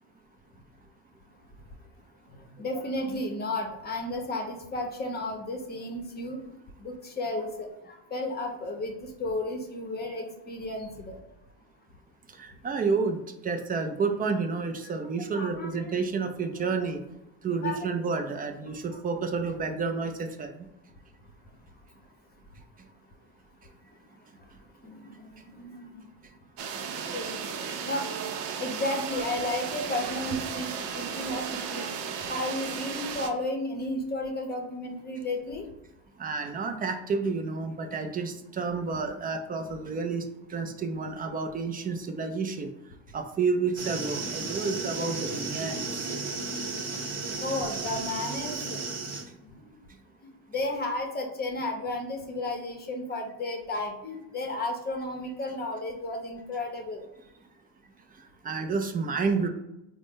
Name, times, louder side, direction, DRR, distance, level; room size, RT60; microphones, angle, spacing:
voice 1, 2.3-6.4 6.8-11.2 15.3-15.9 16.6-16.7 17.6-17.9 24.8-26.0 27.1-28.1 28.6-31.9 32.3-35.6 47.4-49.0 49.5-49.6 50.2-57.0, left 2 dB, 25° left, 2 dB, 0.8 m, -33 dB
voice 2, 12.4-17.0 17.4-20.7 36.2-40.2 40.5-42.7 43.1-46.1 58.4-59.5, right 4 dB, 25° right, 5 dB, 0.4 m, -30 dB
sound 1, 26.6-33.3, right 6 dB, 65° right, 0.6 m, -35 dB
sound 2, 43.8-49.2, right 4 dB, 40° right, 0.9 m, -34 dB
3.8 x 2.1 x 3.6 m, 0.89 s
supercardioid pair, 110°, 40 cm